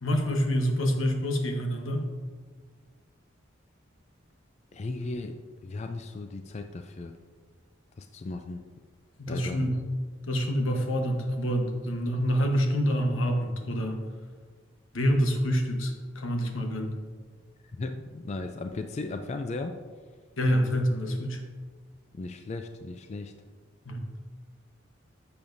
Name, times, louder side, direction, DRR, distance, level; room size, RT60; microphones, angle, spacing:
voice 1, 0.0-2.1 9.2-9.8 10.3-14.0 14.9-16.9 20.4-21.4 23.8-24.1, equal, 85° left, 3 dB, 1.1 m, -27 dB
voice 2, 4.7-7.2 8.0-8.6 9.3-9.6 17.8-19.8 22.1-23.3, left 3 dB, 35° left, 7 dB, 0.3 m, -36 dB
10.5 x 6.8 x 2.6 m, 1.5 s
head